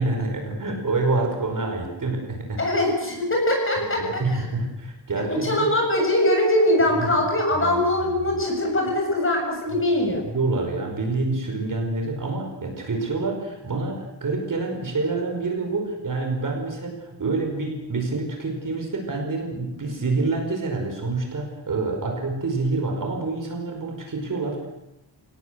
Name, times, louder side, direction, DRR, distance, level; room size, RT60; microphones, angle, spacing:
voice 1, 0.0-2.6 3.1-3.2 4.0-5.7 7.0-7.2 7.5-7.7 10.2-24.7, right 3 dB, 45° right, 2 dB, 5.1 m, -27 dB
voice 2, 2.6-4.4 5.3-10.2, left 1 dB, 25° left, 1 dB, 7.6 m, -22 dB
27.0 x 18.5 x 8.1 m, 0.90 s
wide cardioid pair, 180°, 45 cm